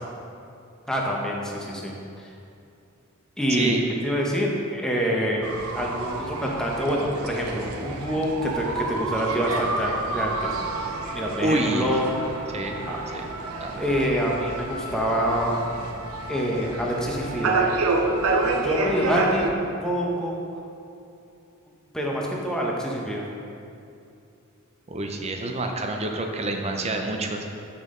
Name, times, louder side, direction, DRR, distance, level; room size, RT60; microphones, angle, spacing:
voice 1, 0.9-2.3 3.4-3.7 4.0-5.5 5.7-10.9 11.1-12.1 12.9-13.0 13.8-15.6 16.3-17.6 18.6-20.3 21.9-23.3, equal, 5° left, -3 dB, 0.9 m, -26 dB
voice 2, 3.5-3.8 11.4-11.9 12.5-12.8 13.1-13.2 13.6-13.8 24.9-27.5, right 2 dB, 30° right, 3 dB, 0.6 m, -27 dB
sound 1, 5.4-19.5, right 3 dB, 85° right, 0.7 m, -29 dB
8.3 x 5.6 x 3.8 m, 2.6 s
head